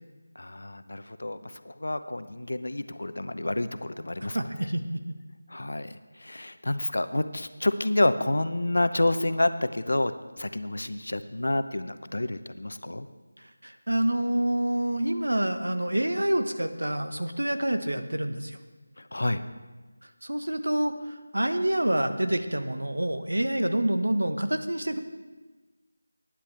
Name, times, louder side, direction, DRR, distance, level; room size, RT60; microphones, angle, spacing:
voice 1, 0.3-4.5 5.5-10.1 10.4-13.1 19.0-19.4, left 1 dB, 75° left, 11 dB, 0.8 m, -29 dB
voice 2, 4.3-5.0 13.6-18.6 20.2-25.0, right 1 dB, 90° right, 7 dB, 1.1 m, -27 dB
18.5 x 10.0 x 3.4 m, 1.2 s
figure-of-eight pair, 170°, 0 cm